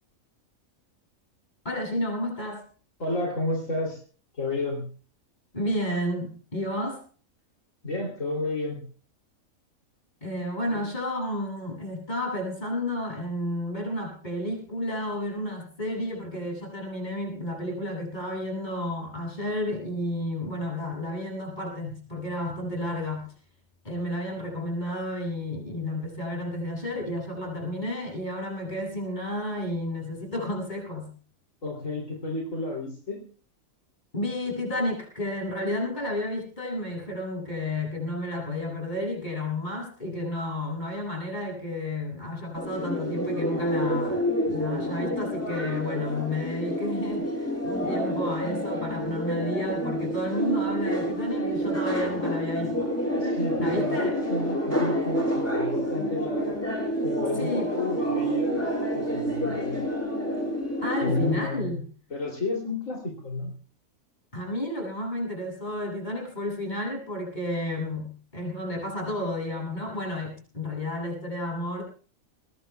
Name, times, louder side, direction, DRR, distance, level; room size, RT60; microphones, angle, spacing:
voice 1, 1.6-2.6 5.5-7.0 10.2-23.3 23.8-31.1 34.1-52.9 53.6-54.2 57.3-57.7 59.5-59.6 60.8-61.9 64.3-71.8, left 1 dB, 30° left, -1 dB, 7.5 m, -31 dB
voice 2, 3.0-4.0 4.3-4.9 7.8-8.8 10.7-10.8 31.6-33.2 53.1-54.0 54.3-56.6 57.0-59.8 61.0-61.7 62.1-63.5, left 2 dB, 65° left, 0 dB, 3.5 m, -31 dB
sound 1, 42.5-61.3, equal, 10° left, 4.7 m, -28 dB
23.0 x 20.0 x 2.3 m, 0.40 s
omnidirectional pair, 1.4 m